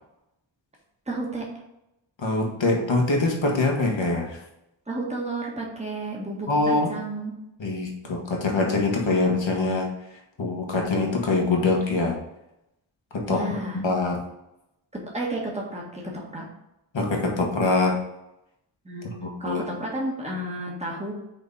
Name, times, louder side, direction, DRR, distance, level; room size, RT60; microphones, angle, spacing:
voice 1, 1.1-1.5 4.9-7.3 13.3-13.8 15.1-16.4 18.8-21.1, right 1 dB, 15° right, -2 dB, 1.6 m, -32 dB
voice 2, 2.2-4.4 6.5-6.9 7.6-9.9 10.4-12.2 13.1-13.4 13.7-14.2 16.9-18.0 19.2-19.6, left 3 dB, 65° left, 0 dB, 1.6 m, -24 dB
6.1 x 3.9 x 4.1 m, 0.87 s
wide cardioid pair, 90°, 49 cm